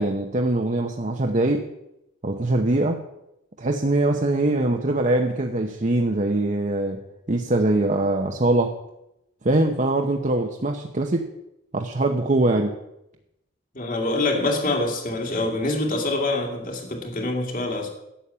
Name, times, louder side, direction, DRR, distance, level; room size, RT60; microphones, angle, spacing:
voice 1, 0.0-1.7 2.2-3.0 3.6-7.0 7.3-8.8 9.4-11.3 11.7-12.7, right 2 dB, 40° right, 0.9 m, -22 dB
voice 2, 13.7-17.9, left 2 dB, 45° left, 2.4 m, -25 dB
11.5 x 7.2 x 8.5 m
head